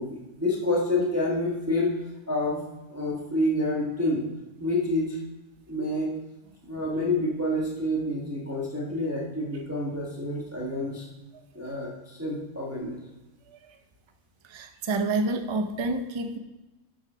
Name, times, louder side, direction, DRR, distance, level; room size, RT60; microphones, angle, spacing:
voice 1, 0.0-2.0 2.3-2.6 2.9-4.3 4.6-5.2 5.7-6.1 6.7-11.1 11.5-13.0, left 1 dB, 10° right, -3 dB, 1.2 m, -28 dB
voice 2, 14.5-16.4, right 2 dB, 40° right, 6 dB, 0.4 m, -28 dB
7.2 x 5.7 x 6.1 m, 1.0 s
omnidirectional pair, 1.5 m